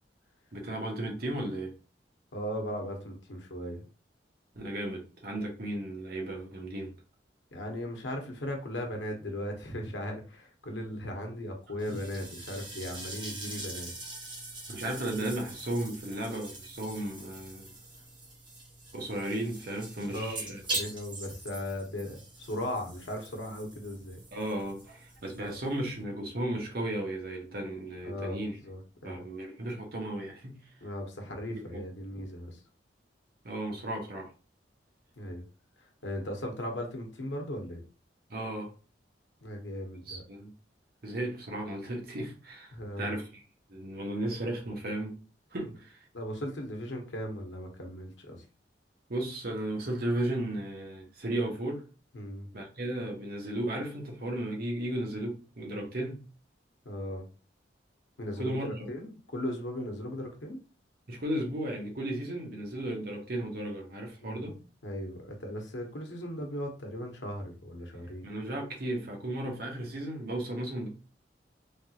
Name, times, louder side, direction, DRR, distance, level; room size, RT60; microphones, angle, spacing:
voice 1, 0.5-1.7 4.5-6.9 11.9-12.0 14.7-17.7 18.9-20.6 24.3-28.6 29.0-30.6 31.5-31.8 33.4-34.3 38.3-38.7 40.1-40.5 41.0-43.4 43.7-45.2 45.5-46.0 49.1-51.8 52.5-56.2 58.4-58.9 61.1-64.6 68.2-70.9, right 1 dB, 55° right, 0.9 m, -35 dB
voice 2, 2.3-3.9 7.5-13.9 20.0-24.2 28.0-29.2 30.8-32.6 35.2-35.4 35.8-37.8 39.4-40.2 42.7-43.2 45.6-45.7 46.1-48.4 52.1-52.5 56.8-57.2 58.2-60.6 64.2-64.5 64.8-68.3, left 1 dB, 85° left, 0.9 m, -37 dB
sound 1, 11.8-26.0, right 2 dB, 25° right, 1.1 m, -43 dB
3.3 x 2.3 x 2.8 m
head